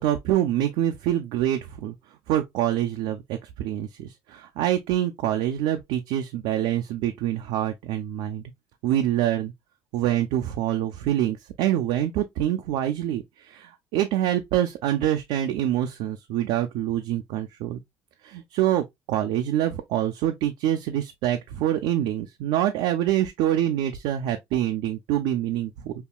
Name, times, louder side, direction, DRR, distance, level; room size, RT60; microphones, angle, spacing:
voice 1, 0.0-2.0 2.3-8.4 8.8-9.5 9.9-17.8 18.2-25.9, right 12 dB, 85° right, 0.5 m, -25 dB
5.5 x 2.3 x 2.2 m
cardioid pair, 100°, 9 cm